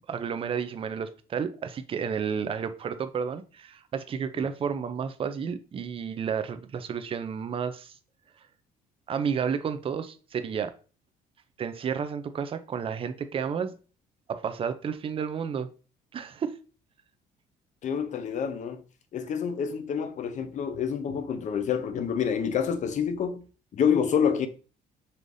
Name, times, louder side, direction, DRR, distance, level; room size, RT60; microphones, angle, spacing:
voice 1, 0.1-7.9 9.1-10.7 11.6-13.7 14.3-15.7 16.1-16.6, right 7 dB, 35° right, 0.5 m, -31 dB
voice 2, 17.8-18.8 19.1-23.4 23.7-24.5, left 7 dB, 45° left, 0.6 m, -27 dB
5.4 x 3.3 x 2.6 m
cardioid pair, 110°, 17 cm